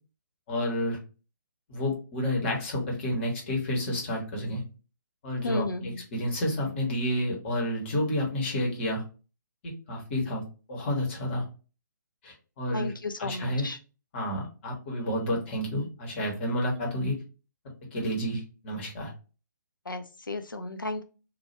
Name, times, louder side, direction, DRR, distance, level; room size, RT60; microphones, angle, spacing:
voice 1, 0.5-1.0 1.7-4.6 5.2-9.0 9.6-10.4 10.7-11.4 12.2-12.9 13.2-13.7 14.1-17.2 17.9-19.1, equal, 35° left, 0 dB, 1.5 m, -30 dB
voice 2, 5.4-6.0 12.7-13.8 19.9-21.0, left 2 dB, 85° left, 7 dB, 0.5 m, -33 dB
2.8 x 2.7 x 4.2 m, 0.33 s
figure-of-eight pair, 135°, 11 cm